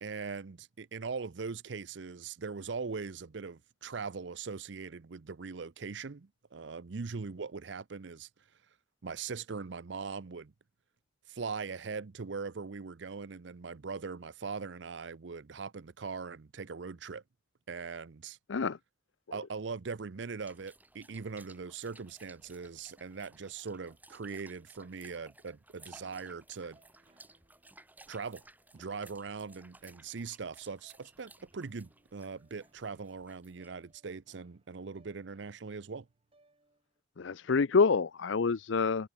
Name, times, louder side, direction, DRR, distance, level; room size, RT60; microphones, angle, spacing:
voice 1, 0.0-8.3 9.0-10.5 11.3-17.2 17.7-18.4 19.3-26.8 28.1-28.4 28.7-36.1, right 5 dB, 70° right, 0.6 m, -41 dB
sound 1, 20.4-34.0, right 2 dB, 10° right, 2.8 m, -59 dB
sound 2, 26.0-37.0, right 2 dB, 30° right, 7.4 m, -70 dB
voice 2, 37.2-39.1, left 4 dB, 75° left, 0.6 m, -27 dB
head